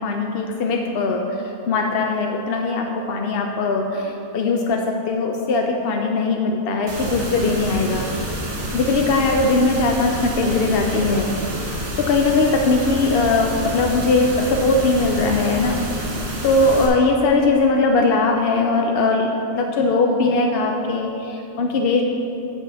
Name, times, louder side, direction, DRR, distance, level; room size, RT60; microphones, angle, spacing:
voice 1, 0.0-8.1 8.7-11.3 12.0-15.8 16.4-22.0, left 3 dB, 60° left, 2 dB, 0.6 m, -20 dB
sound 1, 6.9-16.9, equal, 85° right, 1.8 m, -29 dB
7.4 x 5.7 x 6.2 m, 2.9 s
omnidirectional pair, 1.5 m